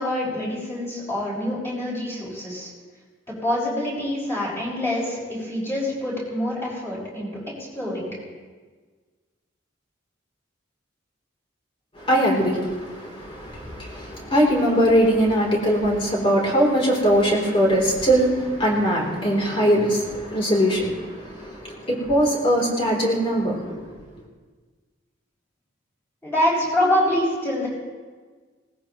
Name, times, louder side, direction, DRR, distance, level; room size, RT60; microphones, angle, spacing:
voice 1, 0.0-2.7 3.3-7.3 7.7-8.1 26.2-27.7, left 1 dB, 15° left, -7 dB, 6.3 m, -25 dB
voice 2, 12.0-24.0, equal, 30° left, -2 dB, 3.5 m, -21 dB
20.0 x 18.5 x 3.1 m, 1.5 s
head